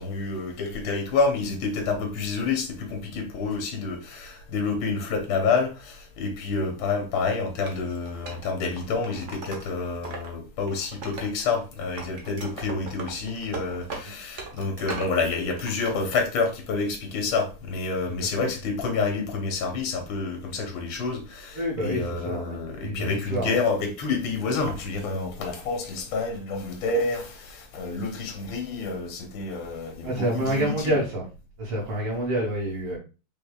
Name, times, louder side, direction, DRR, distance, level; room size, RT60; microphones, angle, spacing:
voice 1, 0.0-31.0, left 4 dB, 70° left, 1.8 m, -28 dB
Wood, 7.6-10.3 10.6-11.6 11.9-15.2 15.6-16.2, right 3 dB, 45° right, 1.0 m, -39 dB
voice 2, 21.6-23.6 30.0-31.2 31.6-33.0, right 1 dB, 80° right, 2.3 m, -28 dB
5.3 x 4.3 x 2.3 m
omnidirectional pair, 2.4 m